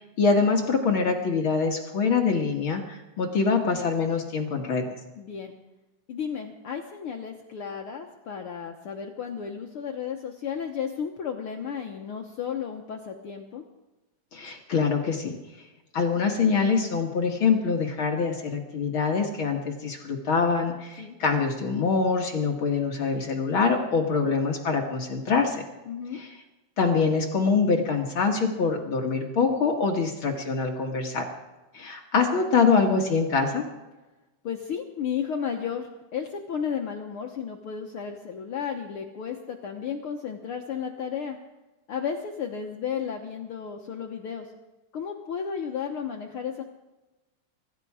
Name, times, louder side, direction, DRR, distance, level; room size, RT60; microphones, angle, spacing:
voice 1, 0.2-4.8 14.3-15.4 15.9-25.6 26.1-26.3 26.8-31.3 31.7-33.7, left 5 dB, 50° left, 2 dB, 1.8 m, -24 dB
voice 2, 5.2-5.5 6.1-13.6 21.0-21.2 24.2-24.4 25.9-26.2 34.4-41.4 41.9-44.5 44.9-46.6, left 7 dB, 75° left, 3 dB, 1.2 m, -33 dB
24.0 x 12.5 x 4.9 m, 1.1 s
omnidirectional pair, 3.9 m